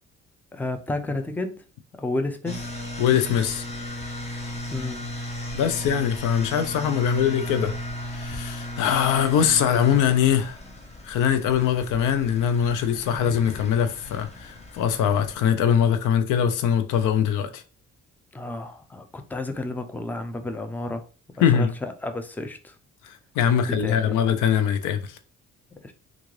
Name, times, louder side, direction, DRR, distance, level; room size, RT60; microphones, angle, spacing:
voice 1, 0.5-1.6 2.0-2.7 4.7-5.1 18.3-21.1 21.4-22.8 23.7-24.1 25.8-25.9, left 2 dB, 5° left, 0.5 m, -31 dB
sound 1, 2.4-15.3, left 1 dB, 20° left, 0.9 m, -36 dB
voice 2, 3.0-3.6 5.5-7.7 8.1-10.6 11.0-17.6 21.4-21.7 23.0-25.2, left 8 dB, 90° left, 0.6 m, -22 dB
3.6 x 2.5 x 3.1 m
cardioid pair, 90°, 30 cm